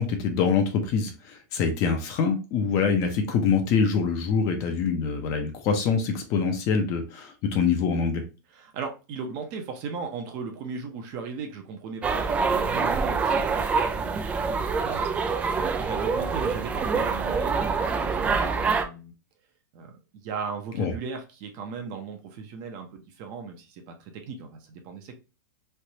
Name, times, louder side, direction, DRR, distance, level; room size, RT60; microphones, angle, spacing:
voice 1, 0.0-8.2 20.8-20.9, left 5 dB, 35° left, 0.7 m, -25 dB
voice 2, 8.5-13.7 13.9-19.1 19.7-19.9 20.2-25.2, right 5 dB, 35° right, 0.7 m, -37 dB
sound 1, 12.0-18.8, right 5 dB, 10° right, 0.3 m, -26 dB
3.3 x 2.5 x 2.8 m
supercardioid pair, 155°, 10 cm